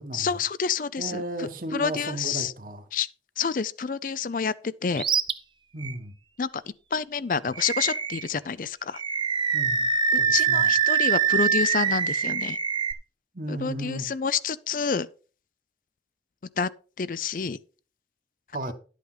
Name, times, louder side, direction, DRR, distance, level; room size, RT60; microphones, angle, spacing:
voice 1, 0.1-2.5 2.9-3.1 3.4-5.0 6.4-9.0 10.1-12.6 13.5-15.1 16.6-16.7 17.0-17.6, left 6 dB, 50° left, 0.4 m, -28 dB
voice 2, 1.0-2.8 5.7-6.1 9.5-9.9 10.2-10.7 13.3-14.1 18.5-18.7, right 1 dB, 50° right, 1.4 m, -34 dB
Animal, 5.0-5.3 5.8-5.9 7.6-8.3 9.0-12.9, right 6 dB, 25° right, 0.6 m, -24 dB
11.5 x 8.2 x 3.9 m
head